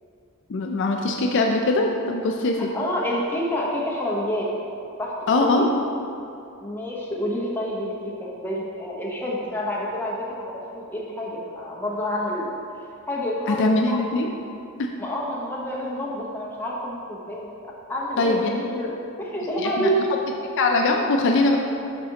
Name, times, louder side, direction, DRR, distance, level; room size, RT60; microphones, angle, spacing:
voice 1, 0.5-2.7 5.3-5.7 13.5-14.3 14.8-14.9 18.2-18.6 19.6-19.9 20.6-21.6, left 2 dB, 55° left, 2 dB, 0.4 m, -21 dB
voice 2, 2.6-4.5 5.0-5.7 6.6-12.5 13.1-14.0 15.0-18.9 19.2-20.1, equal, 10° left, -5 dB, 0.9 m, -28 dB
11.0 x 4.2 x 2.9 m, 2.6 s
head